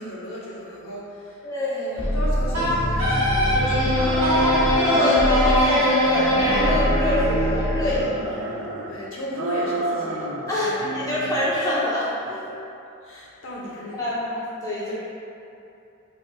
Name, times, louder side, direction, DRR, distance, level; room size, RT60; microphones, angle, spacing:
voice 1, 0.0-1.4 2.1-4.6 8.9-10.3 10.6-10.8 13.0-14.2, equal, 65° left, -5 dB, 0.8 m, -35 dB
voice 2, 1.4-2.1 4.8-8.4 10.5-12.5 13.9-14.9, left 1 dB, 15° left, -9 dB, 0.5 m, -25 dB
sound 1, 2.0-8.2, equal, 25° right, 0.9 m, -23 dB
Wind instrument woodwind instrument, 2.5-3.6 4.2-4.7 5.3-8.3, left 1 dB, 85° right, 1.3 m, -26 dB
sound 2, 3.9-5.6 6.0-7.5 7.9-8.9 9.3-10.5 10.8-11.5, right 2 dB, 65° right, 0.4 m, -30 dB
6.0 x 2.9 x 2.2 m, 2.8 s
head